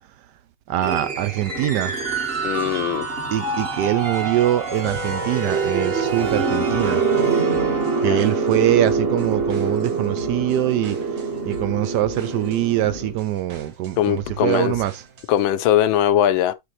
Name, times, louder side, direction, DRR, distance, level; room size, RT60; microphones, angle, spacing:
voice 1, 0.7-2.0 3.3-7.0 8.0-15.0, right 13 dB, 85° right, 0.9 m, -23 dB
sound 1, 0.8-13.1, right 4 dB, 30° right, 1.3 m, -24 dB
voice 2, 2.4-3.1 8.1-8.2 14.0-14.8 15.3-16.5, left 11 dB, 75° left, 1.3 m, -20 dB
sound 2, 4.8-15.5, right 2 dB, 60° right, 2.0 m, -41 dB
9.7 x 3.8 x 3.1 m
omnidirectional pair, 2.4 m